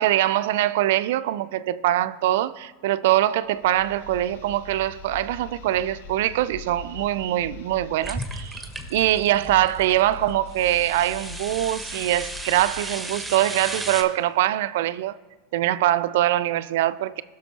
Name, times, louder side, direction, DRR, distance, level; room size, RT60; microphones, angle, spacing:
voice 1, 0.0-15.2 15.5-17.2, right 14 dB, 70° right, 0.3 m, -23 dB
sound 1, 3.4-13.1, left 7 dB, 70° left, 0.6 m, -43 dB
sound 2, 8.0-10.0 10.5-14.0, right 1 dB, 5° right, 1.1 m, -35 dB
18.0 x 6.2 x 2.8 m
hypercardioid pair, 95°, 0 cm